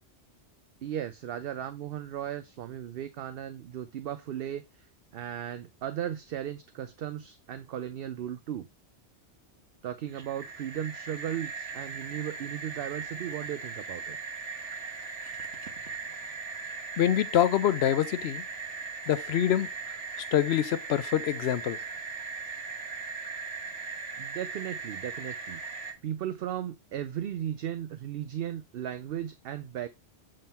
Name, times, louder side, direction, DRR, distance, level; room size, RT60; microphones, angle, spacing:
voice 1, 0.8-4.6 5.1-8.7 9.8-14.2 24.2-29.9, right 10 dB, 60° right, 0.7 m, -36 dB
sound 1, 10.1-25.9, right 4 dB, 85° right, 1.6 m, -39 dB
voice 2, 17.0-18.4 19.1-21.8, left 11 dB, 70° left, 0.8 m, -26 dB
7.7 x 3.6 x 4.2 m
omnidirectional pair, 1.2 m